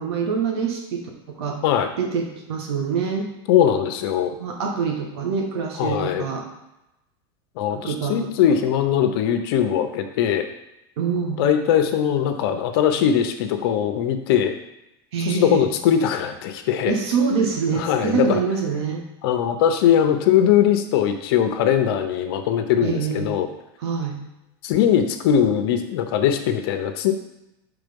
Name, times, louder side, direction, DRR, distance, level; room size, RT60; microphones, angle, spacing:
voice 1, 0.0-1.6 2.0-3.3 4.4-6.5 7.7-8.3 11.0-11.4 15.1-15.6 16.9-19.0 22.8-23.3 23.8-24.2, right 6 dB, 75° right, 1 dB, 1.7 m, -25 dB
voice 2, 3.5-4.3 5.8-6.2 7.6-10.5 11.4-14.5 15.3-17.0 17.7-18.4 19.2-23.5 24.6-27.1, left 9 dB, 65° left, 7 dB, 0.8 m, -20 dB
6.0 x 3.8 x 5.3 m, 0.90 s
supercardioid pair, 140°, 14 cm